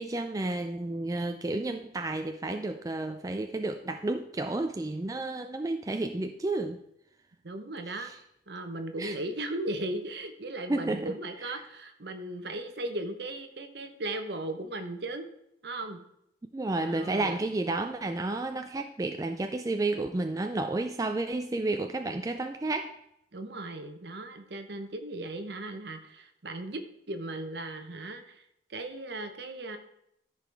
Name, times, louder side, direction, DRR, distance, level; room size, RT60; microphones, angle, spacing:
voice 1, 0.0-6.8 8.0-8.2 9.0-9.2 10.7-11.1 11.4-11.5 16.5-23.0, right 2 dB, 20° right, 6 dB, 0.3 m, -31 dB
voice 2, 7.4-8.1 8.5-15.3 15.6-16.0 16.8-17.4 23.3-28.4 28.7-29.8, right 2 dB, 60° right, 7 dB, 0.9 m, -37 dB
14.0 x 5.0 x 3.4 m, 0.77 s
head